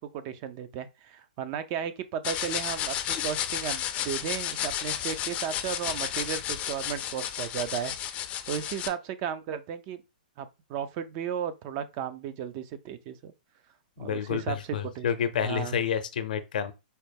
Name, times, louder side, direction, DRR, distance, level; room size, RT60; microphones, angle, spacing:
voice 1, 0.0-7.9 8.5-10.0 10.4-13.3 14.0-14.6 14.8-15.1 15.4-15.8, right 8 dB, 35° right, 0.4 m, -34 dB
sound 1, 2.2-8.9, left 10 dB, 30° left, 0.4 m, -32 dB
voice 2, 14.0-16.7, left 8 dB, 70° left, 0.6 m, -29 dB
4.2 x 2.0 x 3.4 m
hypercardioid pair, 135°, 5 cm